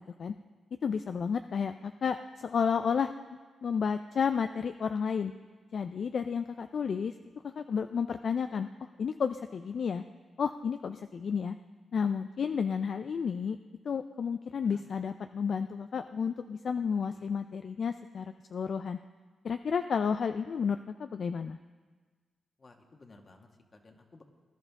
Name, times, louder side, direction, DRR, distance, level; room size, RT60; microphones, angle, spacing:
voice 1, 0.8-5.3 5.7-7.1 7.4-8.7 9.0-10.0 10.4-11.6 11.9-13.6 13.8-19.0 19.4-21.6, left 6 dB, 65° left, 9 dB, 0.4 m, -31 dB
voice 2, 6.8-7.2 14.5-14.8 16.9-17.3 22.6-24.2, left 3 dB, 40° left, 3 dB, 1.6 m, -58 dB
20.0 x 11.0 x 3.6 m, 1.4 s
cardioid pair, 65°, 0 cm